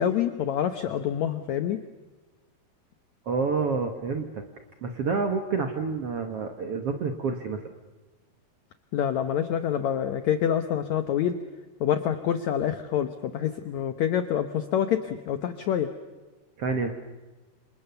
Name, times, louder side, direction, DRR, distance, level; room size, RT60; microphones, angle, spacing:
voice 1, 0.0-1.8 8.9-11.3 11.8-15.9, left 9 dB, 75° left, 9 dB, 1.6 m, -26 dB
voice 2, 3.2-4.4 4.8-7.6 16.6-16.9, right 4 dB, 70° right, 6 dB, 1.4 m, -28 dB
29.5 x 27.0 x 7.0 m, 1.2 s
omnidirectional pair, 4.7 m